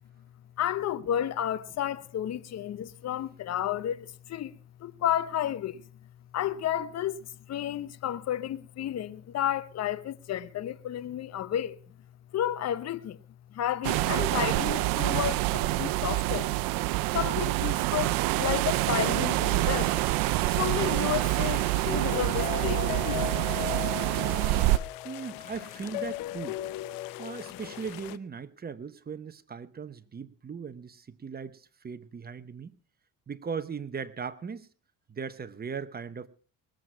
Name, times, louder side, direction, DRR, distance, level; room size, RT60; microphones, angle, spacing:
voice 1, 0.6-5.8 6.3-11.8 12.3-13.2 13.5-16.5 17.1-20.0 20.6-23.2, left 11 dB, 50° left, 0.9 m, -32 dB
sound 1, 13.8-24.8, right 19 dB, 85° right, 0.7 m, -27 dB
sound 2, 19.4-28.2, left 15 dB, 90° left, 0.7 m, -38 dB
voice 2, 25.0-26.6 27.2-32.7 33.3-34.7 35.1-36.3, right 6 dB, 30° right, 1.2 m, -38 dB
20.5 x 7.9 x 5.6 m
supercardioid pair, 85°, 33 cm